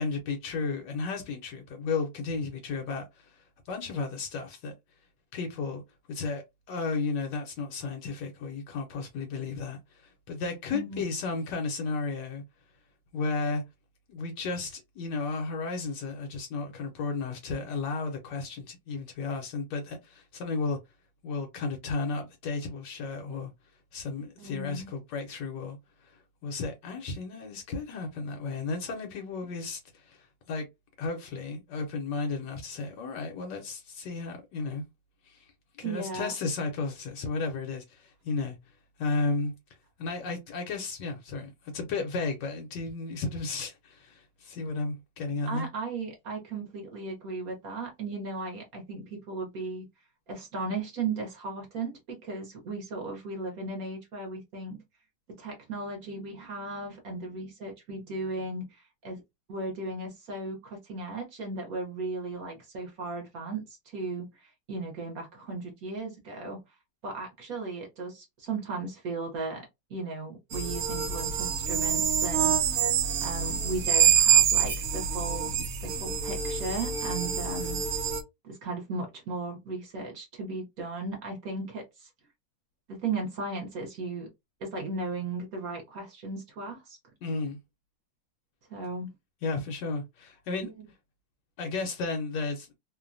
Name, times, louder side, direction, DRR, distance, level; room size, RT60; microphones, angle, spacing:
voice 1, 0.0-4.7 5.3-5.8 6.1-12.4 13.1-13.6 14.1-20.8 21.2-23.5 23.9-30.7 31.0-34.8 35.2-35.5 35.8-38.6 39.0-39.5 40.0-45.7 87.2-87.6 89.4-90.7 91.6-92.7, left 4 dB, 75° left, 1.2 m, -33 dB
voice 2, 10.7-11.0 24.4-24.9 35.8-36.3 45.5-49.9 50.3-54.8 55.4-59.2 59.5-66.6 67.0-72.9 73.2-75.5 75.8-78.1 78.4-82.1 82.9-84.3 84.6-87.0 88.7-89.1, right 3 dB, 60° right, 1.1 m, -36 dB
sound 1, 70.5-78.2, right 8 dB, 85° right, 0.7 m, -26 dB
3.1 x 2.1 x 2.4 m
omnidirectional pair, 2.0 m